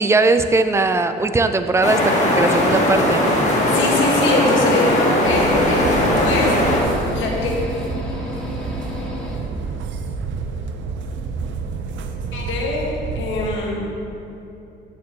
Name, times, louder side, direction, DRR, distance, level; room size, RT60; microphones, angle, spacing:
voice 1, 0.0-3.4, right 3 dB, 15° right, 9 dB, 0.4 m, -19 dB
sound 1, 1.8-6.8, left 1 dB, 35° left, 1.5 m, -18 dB
sound 2, 2.3-9.4, left 1 dB, 5° left, 1.7 m, -31 dB
voice 2, 3.7-7.5 12.3-13.9, left 2 dB, 80° left, -2 dB, 1.4 m, -24 dB
sound 3, 5.2-13.6, right 4 dB, 75° right, 0.6 m, -29 dB
8.7 x 7.3 x 2.9 m, 2.8 s
cardioid pair, 90°, 20 cm